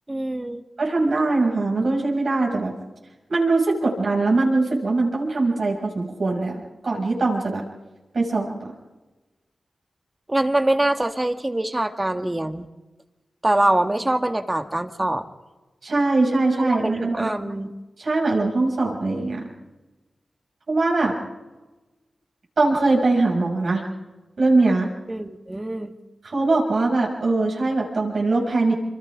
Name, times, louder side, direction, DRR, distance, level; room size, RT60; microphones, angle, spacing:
voice 1, 0.1-0.6 10.3-12.7 13.4-15.2 16.6-17.7 25.1-25.9, right 1 dB, 25° right, 7 dB, 1.8 m, -24 dB
voice 2, 0.8-2.7 3.3-7.6 8.1-8.7 15.8-17.3 18.0-19.5 20.7-21.1 22.6-23.9 24.4-24.9 26.2-28.7, right 3 dB, 70° right, -2 dB, 6.4 m, -21 dB
28.0 x 25.5 x 3.7 m, 1.1 s
cardioid pair, 40°, 0 cm